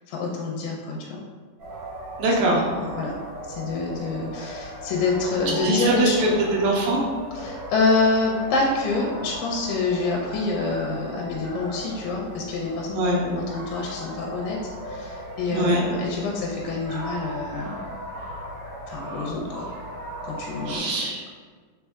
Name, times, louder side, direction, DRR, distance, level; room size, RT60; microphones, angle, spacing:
voice 1, 0.1-1.2 2.5-3.2 3.5-6.4 7.3-14.6 14.9-17.8 18.9-19.7 20.2-20.9, left 3 dB, 90° left, -1 dB, 2.3 m, -26 dB
sound 1, 1.6-20.8, right 1 dB, 60° right, 1.5 m, -37 dB
voice 2, 2.2-2.6 5.6-7.0 12.9-13.2 15.5-15.8 20.7-21.2, right 2 dB, 75° right, -3 dB, 1.8 m, -22 dB
4.4 x 4.3 x 2.3 m, 1.5 s
omnidirectional pair, 3.9 m